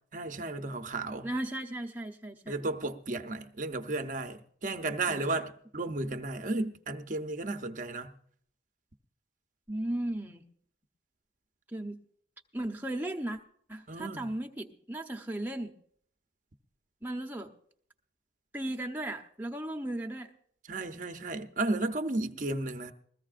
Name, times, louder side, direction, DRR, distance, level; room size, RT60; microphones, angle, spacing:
voice 1, 0.1-1.3 2.5-8.1 13.9-14.3 20.7-22.9, right 2 dB, 40° right, 0.7 m, -34 dB
voice 2, 1.2-2.7 5.1-5.3 9.7-10.4 11.7-12.0 12.5-13.4 13.7-15.7 17.0-17.5 18.5-20.3, right 1 dB, 10° right, 0.8 m, -36 dB
21.0 x 14.5 x 2.5 m
head